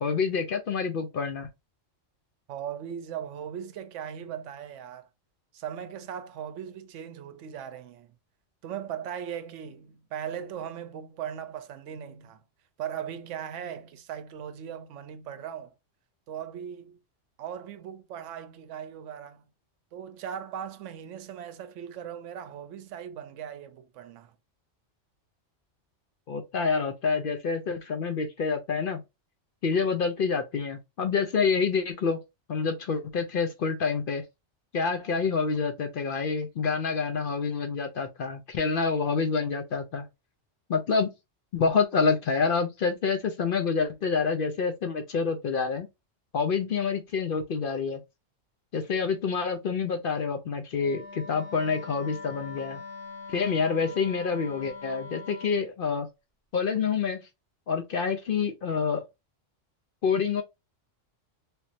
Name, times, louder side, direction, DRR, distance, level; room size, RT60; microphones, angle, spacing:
voice 1, 0.0-1.5 26.3-29.0 29.6-32.2 32.5-34.2 34.7-40.1 40.7-41.1 41.5-45.9 46.3-48.0 48.7-52.8 53.3-56.1 56.5-57.2 57.7-59.0 60.0-60.4, left 5 dB, 60° left, 0.6 m, -27 dB
voice 2, 2.5-5.1 5.5-8.1 8.6-12.4 12.8-15.7 16.3-17.0 17.4-19.5 19.9-24.3, right 9 dB, 80° right, 0.9 m, -38 dB
Wind instrument woodwind instrument, 50.8-55.6, left 4 dB, 20° left, 1.7 m, -42 dB
3.3 x 3.0 x 2.7 m
omnidirectional pair, 1.3 m